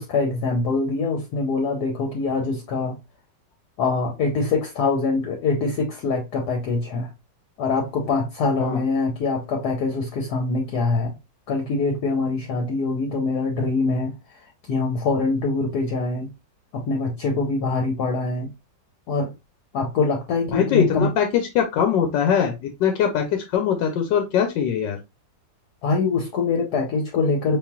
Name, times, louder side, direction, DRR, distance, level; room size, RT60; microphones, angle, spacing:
voice 1, 0.0-3.0 3.8-7.1 7.6-11.2 11.5-14.2 14.7-16.3 16.7-18.5 19.1-19.3 19.7-21.1 25.8-27.6, left 3 dB, 65° left, 1.2 m, -24 dB
voice 2, 20.5-25.0, left 8 dB, 85° left, 1.3 m, -22 dB
5.0 x 2.9 x 2.3 m
omnidirectional pair, 2.0 m